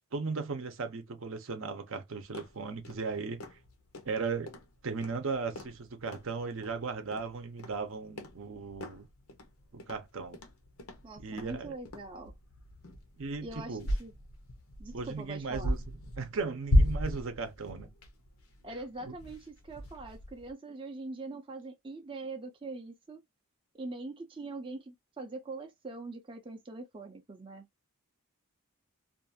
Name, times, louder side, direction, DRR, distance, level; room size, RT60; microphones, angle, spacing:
voice 1, 0.1-3.4 4.1-4.5 4.8-9.1 9.7-10.4 11.2-11.8 13.2-13.9 14.9-17.9 19.0-19.1, right 4 dB, 65° right, 0.6 m, -37 dB
sound 1, 2.2-20.5, left 1 dB, 80° left, 0.8 m, -36 dB
voice 2, 11.0-12.3 13.4-14.1 14.8-15.7 18.6-23.2 23.7-27.7, right 3 dB, 25° right, 0.4 m, -43 dB
2.6 x 2.4 x 2.6 m
head